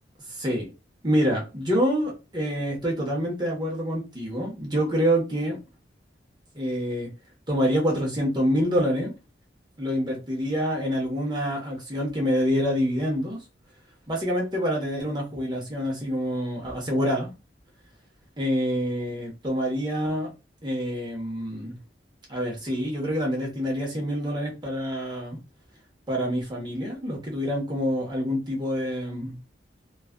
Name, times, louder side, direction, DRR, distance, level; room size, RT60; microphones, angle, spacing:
voice 1, 0.3-0.7 1.0-5.6 6.5-7.1 7.5-9.1 9.8-13.4 14.1-17.3 18.4-20.3 20.6-21.8 22.3-25.4 26.1-29.4, equal, 25° right, 1.0 m, -26 dB
3.1 x 2.4 x 2.2 m
head